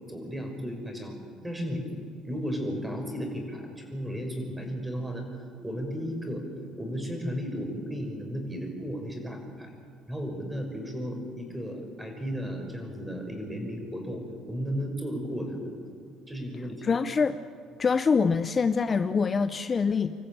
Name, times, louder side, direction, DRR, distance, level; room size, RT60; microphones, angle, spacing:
voice 1, 0.1-1.1 1.4-1.9 2.2-5.3 5.6-6.4 6.8-9.7 10.1-14.2 14.5-15.7 16.3-17.0, equal, 10° right, 3 dB, 5.9 m, -34 dB
voice 2, 16.8-17.4 17.8-20.1, left 5 dB, 35° left, 11 dB, 0.7 m, -24 dB
27.0 x 14.0 x 8.9 m, 2.2 s
supercardioid pair, 90°, 0 cm